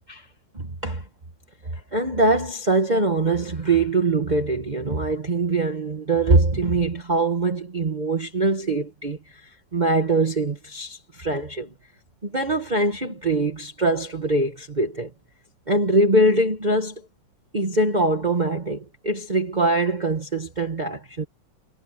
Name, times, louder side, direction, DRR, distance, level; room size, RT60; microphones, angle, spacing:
voice 1, 0.5-1.0 1.6-11.7 12.2-15.1 15.7-16.9 17.5-21.3, right 2 dB, 25° right, 1.5 m, -23 dB
omnidirectional pair, 2.1 m